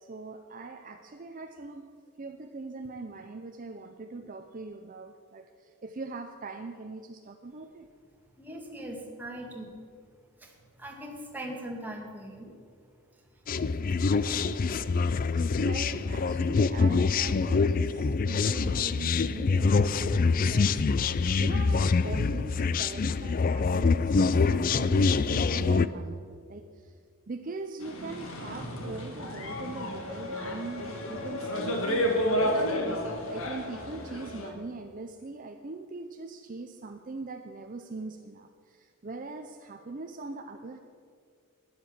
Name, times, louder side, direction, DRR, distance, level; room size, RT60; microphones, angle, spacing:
voice 1, 0.0-7.9 15.3-21.0 21.4-27.0 27.3-32.9 33.3-40.8, right 3 dB, 40° right, 6 dB, 0.6 m, -41 dB
voice 2, 8.4-9.8 10.4-10.5 10.8-12.5 14.1-14.5, right 1 dB, 10° right, -1 dB, 2.1 m, -40 dB
sound 1, 13.5-25.9, left 4 dB, 40° left, 0.4 m, -25 dB
sound 2, 27.8-34.5, equal, 70° left, 1.9 m, -31 dB
12.5 x 10.5 x 7.3 m, 2.1 s
head